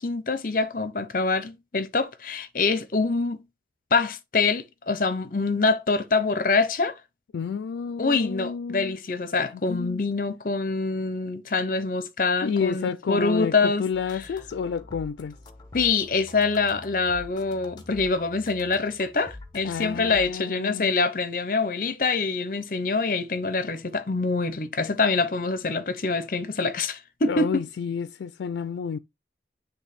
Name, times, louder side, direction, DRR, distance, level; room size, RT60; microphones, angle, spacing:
voice 1, 0.0-3.4 3.9-6.9 8.0-13.8 15.7-27.5, left 4 dB, 50° left, 0.7 m, -25 dB
voice 2, 7.3-9.0 9.5-10.0 12.4-15.4 19.6-21.0 26.1-26.2 27.3-29.0, left 6 dB, 85° left, 0.3 m, -30 dB
sound 1, 13.9-20.3, left 2 dB, 25° left, 1.0 m, -45 dB
8.0 x 3.3 x 4.1 m
head